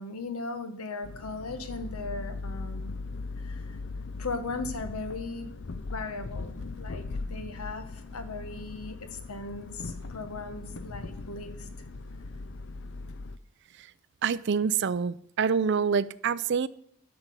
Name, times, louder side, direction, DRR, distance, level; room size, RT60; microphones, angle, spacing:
voice 1, 0.0-3.0 3.4-3.8 4.2-11.7, left 3 dB, 85° left, 1.3 m, -38 dB
sound 1, 1.0-13.4, left 3 dB, 55° left, 0.5 m, -39 dB
voice 2, 14.2-16.7, right 6 dB, 50° right, 0.4 m, -26 dB
12.0 x 6.0 x 6.8 m
head